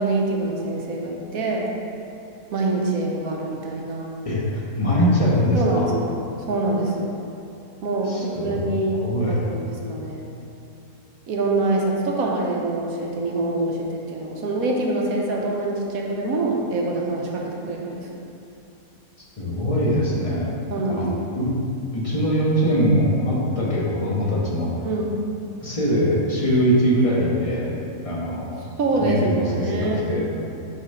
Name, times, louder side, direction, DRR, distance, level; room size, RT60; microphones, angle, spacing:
voice 1, 0.0-1.7 2.5-4.1 5.5-6.0 6.5-7.1 7.8-10.2 11.3-18.1 20.7-21.1 24.3-24.5 24.8-25.2 28.8-30.0, right 2 dB, 75° right, -1 dB, 1.2 m, -25 dB
voice 2, 4.2-5.9 8.1-8.6 9.0-9.4 19.4-20.5 20.9-21.5 21.9-24.9 25.6-27.7 28.0-28.5 29.0-30.2, equal, 25° left, -6 dB, 1.0 m, -22 dB
5.8 x 4.0 x 5.4 m, 2.7 s
omnidirectional pair, 1.5 m